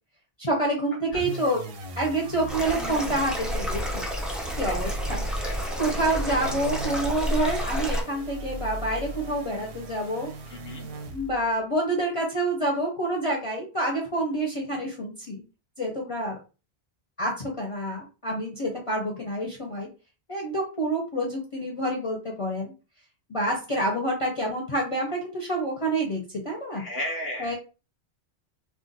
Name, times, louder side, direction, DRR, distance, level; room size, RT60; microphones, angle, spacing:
voice 1, 0.4-1.7 2.0-4.0 4.6-5.2 5.8-10.3 11.1-15.4 15.8-16.4 17.2-19.9 20.3-22.7 23.3-26.8 27.4-27.5, right 1 dB, 35° left, -2 dB, 0.7 m, -28 dB
sound 1, 1.1-11.5, right 1 dB, 70° right, 0.8 m, -37 dB
sound 2, 2.5-8.0, equal, ahead, 0.4 m, -30 dB
voice 2, 10.5-10.9 26.7-27.5, left 1 dB, 70° left, 3 dB, 0.9 m, -34 dB
2.4 x 2.2 x 3.8 m, 0.32 s
omnidirectional pair, 1.1 m